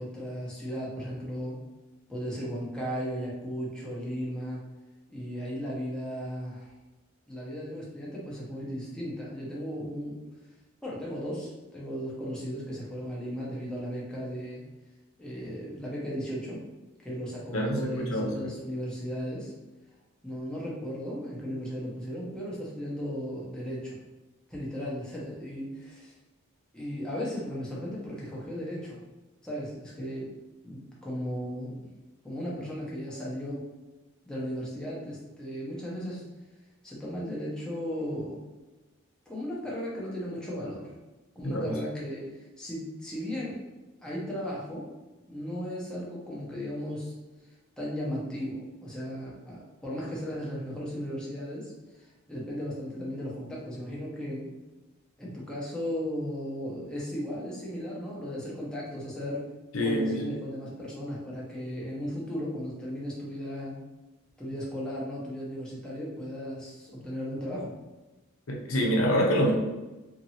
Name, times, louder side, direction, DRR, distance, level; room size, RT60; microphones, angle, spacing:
voice 1, 0.0-1.6 2.1-4.6 5.1-6.7 7.3-10.2 10.8-14.6 15.2-16.6 17.0-19.5 20.2-24.0 24.5-26.1 26.7-29.0 29.4-30.3 30.6-31.7 32.2-33.6 34.3-36.2 36.8-38.4 39.3-40.9 41.4-42.2 42.6-43.6 44.0-44.9 45.3-47.1 47.8-51.7 52.0-54.5 55.2-59.4 59.8-63.8 64.4-67.7, equal, 5° left, -6 dB, 0.8 m, -36 dB
voice 2, 17.5-18.3 41.4-41.7 59.7-60.2 68.5-69.5, equal, 75° left, -1 dB, 0.7 m, -26 dB
2.8 x 2.6 x 2.8 m, 1.1 s
head